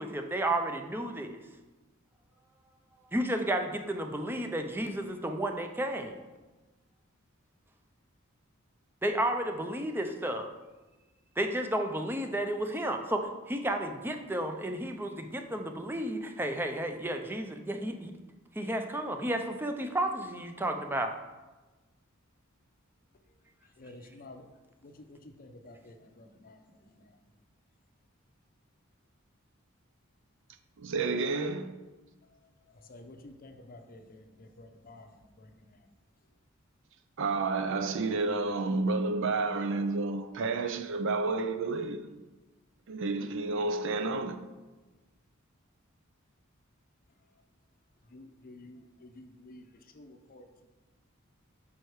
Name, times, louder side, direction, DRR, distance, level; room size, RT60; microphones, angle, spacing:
voice 1, 0.0-1.4 3.1-6.1 9.0-10.5 11.4-18.1 18.6-21.1, right 1 dB, 10° right, 5 dB, 0.5 m, -32 dB
voice 2, 23.8-24.4 24.8-27.1 32.8-35.9 48.1-49.6 49.9-50.7, left 2 dB, 45° left, 6 dB, 0.6 m, -51 dB
voice 3, 30.8-31.8 37.2-42.1 42.9-44.5, right 3 dB, 65° right, 9 dB, 0.5 m, -30 dB
5.6 x 4.7 x 4.6 m, 1.2 s
head